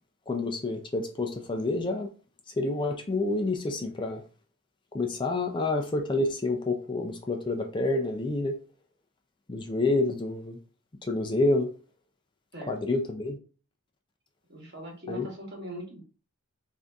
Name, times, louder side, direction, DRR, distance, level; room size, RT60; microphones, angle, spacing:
voice 1, 0.3-2.1 2.6-4.2 4.9-8.6 9.5-10.6 11.0-11.7 12.7-13.4 15.1-15.3, left 2 dB, 20° left, 3 dB, 0.4 m, -28 dB
voice 2, 14.5-16.0, equal, 50° right, -1 dB, 1.3 m, -40 dB
3.8 x 2.6 x 3.4 m, 0.37 s
head